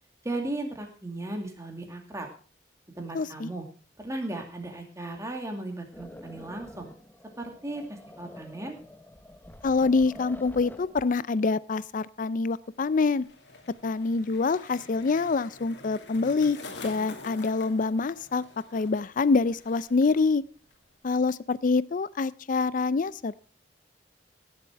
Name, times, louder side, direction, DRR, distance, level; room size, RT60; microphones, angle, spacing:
voice 1, 0.2-2.3 3.0-3.7 4.0-6.9 7.4-8.8, right 2 dB, 20° right, 3 dB, 2.3 m, -36 dB
voice 2, 3.1-3.5 9.6-13.2 13.8-18.4 18.7-20.4 21.0-23.4, left 4 dB, 50° left, 19 dB, 0.5 m, -26 dB
sound 1, 5.9-11.1, left 1 dB, 10° left, 0.8 m, -47 dB
Skateboard, 12.6-20.2 20.4-21.0, left 3 dB, 80° left, 2.5 m, -47 dB
17.0 x 7.5 x 4.5 m, 0.39 s
head